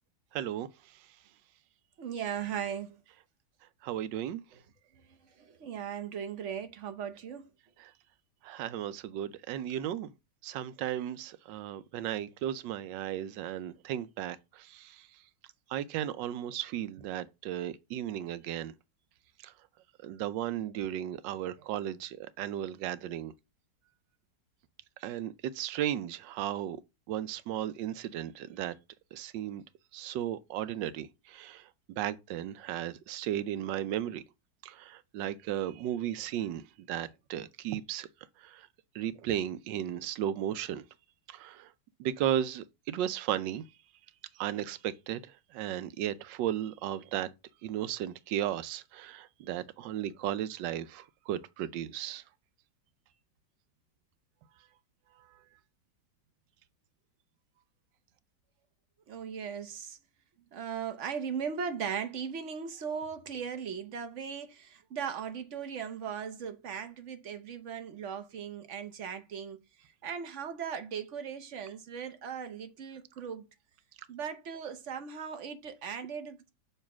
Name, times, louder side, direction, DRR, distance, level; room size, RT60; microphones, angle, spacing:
voice 1, 0.3-0.7 3.8-4.4 8.4-10.1 10.4-15.0 15.7-18.7 19.4-19.5 20.0-23.3 25.0-26.8 27.1-28.7 29.1-29.6 29.9-31.6 32.0-34.2 34.6-38.1 38.4-38.6 38.9-40.8 41.3-41.7 42.0-43.6 44.4-45.2 45.5-47.3 47.6-52.2, right 11 dB, 85° right, 1.3 m, -35 dB
voice 2, 2.0-3.0 4.9-7.5 59.1-60.0 60.5-69.6 70.0-73.5 74.1-76.5, right 7 dB, 50° right, 1.0 m, -38 dB
6.7 x 3.2 x 5.9 m
omnidirectional pair, 1.9 m